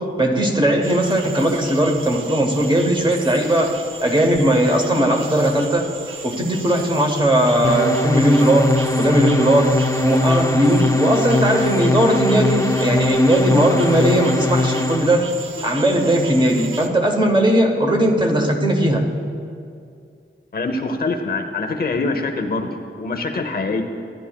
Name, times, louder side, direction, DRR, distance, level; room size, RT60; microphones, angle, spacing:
voice 1, 0.0-5.9 6.2-15.3 15.6-19.1, right 1 dB, 20° right, 1 dB, 0.8 m, -18 dB
sound 1, 0.8-16.9, right 5 dB, 70° right, 0.7 m, -35 dB
sound 2, 7.6-15.2, left 2 dB, 15° left, 0.4 m, -21 dB
voice 2, 20.5-23.8, left 3 dB, 45° left, 5 dB, 0.7 m, -24 dB
14.5 x 10.5 x 2.3 m, 2.4 s
wide cardioid pair, 160°, 21 cm